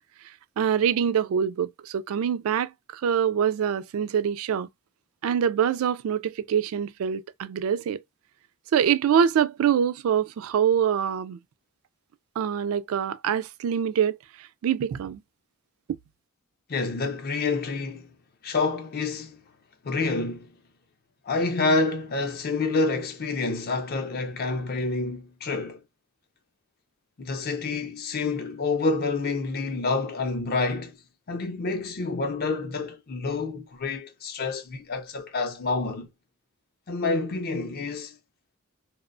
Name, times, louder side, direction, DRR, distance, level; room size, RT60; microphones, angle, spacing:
voice 1, 0.6-4.7 5.2-8.0 8.7-11.4 12.4-15.2, right 8 dB, 70° right, 0.3 m, -25 dB
voice 2, 16.7-18.1 18.4-19.4 19.8-20.5 21.3-25.8 27.2-31.0 31.3-36.1 36.9-38.1, left 3 dB, 45° left, 0.5 m, -28 dB
2.4 x 2.1 x 2.5 m
head